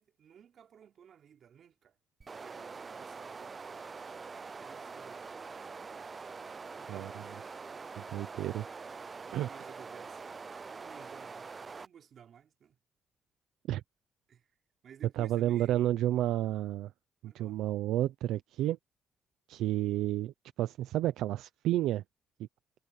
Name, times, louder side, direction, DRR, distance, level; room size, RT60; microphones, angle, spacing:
voice 1, 0.0-2.0 2.3-5.8 6.8-7.6 9.2-10.2 10.7-12.8 14.3-14.5 14.8-15.9 17.2-17.6, right 8 dB, 60° right, 4.0 m, -56 dB
sound 1, 2.2-11.9, right 4 dB, 35° right, 0.4 m, -44 dB
voice 2, 8.0-8.6 9.3-9.5 13.7-13.8 15.2-16.9 17.2-18.8 19.5-20.3 20.6-22.0, right 13 dB, 90° right, 0.6 m, -31 dB
cardioid pair, 90°, 0 cm